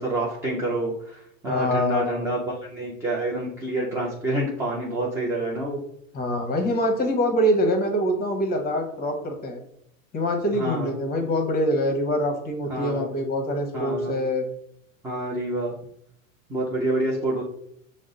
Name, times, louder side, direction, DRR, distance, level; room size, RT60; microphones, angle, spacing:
voice 1, 0.0-5.8 10.5-10.9 12.7-13.1 13.7-14.2 15.0-15.8 16.5-17.4, right 1 dB, 10° right, -4 dB, 0.3 m, -27 dB
voice 2, 1.5-2.3 6.1-9.6 10.1-14.5, equal, 25° left, 4 dB, 0.9 m, -24 dB
5.2 x 2.0 x 3.7 m, 0.75 s
hypercardioid pair, 120°, 41 cm